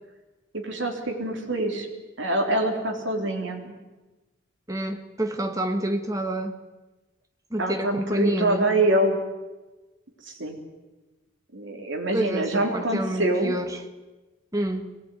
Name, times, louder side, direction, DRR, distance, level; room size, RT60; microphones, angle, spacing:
voice 1, 0.5-1.9 2.2-3.8 7.6-9.2 10.3-10.6 11.5-13.6, right 1 dB, 60° right, 2 dB, 3.7 m, -25 dB
voice 2, 4.7-6.6 7.5-8.7 12.1-13.8 14.5-14.9, right 1 dB, 15° right, 6 dB, 1.4 m, -28 dB
22.0 x 18.5 x 9.4 m, 1.2 s
head